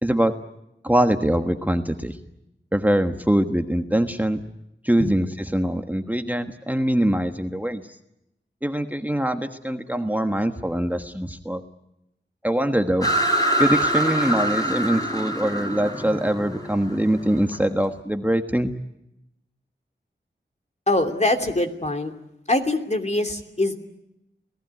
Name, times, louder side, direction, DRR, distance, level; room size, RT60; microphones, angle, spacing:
voice 1, 0.0-0.3 0.8-2.2 2.7-4.4 4.8-7.8 8.6-11.6 12.4-13.1 13.6-18.7, right 1 dB, 10° right, 6 dB, 1.4 m, -23 dB
sound 1, 13.0-17.6, right 1 dB, 20° left, 6.5 m, -24 dB
voice 2, 20.9-22.1 22.5-23.8, left 2 dB, 35° left, 5 dB, 2.9 m, -23 dB
29.0 x 18.5 x 9.4 m, 0.87 s
wide cardioid pair, 75°, 19 cm